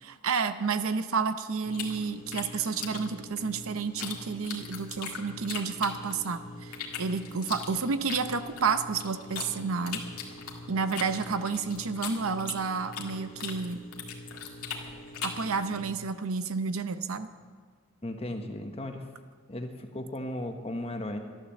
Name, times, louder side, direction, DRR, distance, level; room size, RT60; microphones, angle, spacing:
voice 1, 0.0-10.0 10.7-13.8 15.2-17.3, right 5 dB, 70° right, 11 dB, 0.7 m, -30 dB
sound 1, 1.6-15.9, equal, 60° left, 1.5 m, -46 dB
sound 2, 1.7-4.2 4.4-6.3 6.7-9.5 9.9-13.1 13.4-15.5, left 9 dB, 85° left, 1.9 m, -39 dB
voice 2, 18.0-19.1 19.5-21.2, left 1 dB, 25° left, 5 dB, 1.1 m, -36 dB
12.0 x 12.0 x 7.1 m, 1.6 s
head